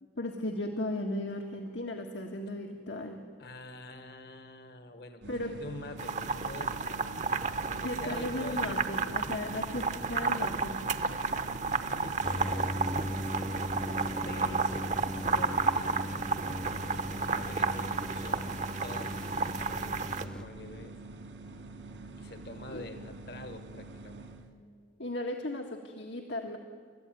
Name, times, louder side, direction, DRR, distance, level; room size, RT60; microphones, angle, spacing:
voice 1, 0.1-3.2 5.3-5.6 7.8-10.8 22.7-22.8 25.0-26.6, left 1 dB, 75° left, 2 dB, 1.7 m, -36 dB
voice 2, 3.4-9.0 11.8-13.4 13.7-16.0 16.7-21.0 22.2-24.3, left 2 dB, 60° left, 8 dB, 1.6 m, -47 dB
sound 1, 5.2-24.5, right 2 dB, 80° right, 2.8 m, -46 dB
sound 2, 6.0-20.2, right 4 dB, 40° right, 0.9 m, -32 dB
sound 3, 12.2-20.5, equal, 5° left, 0.5 m, -38 dB
30.0 x 14.0 x 9.2 m, 2.1 s
head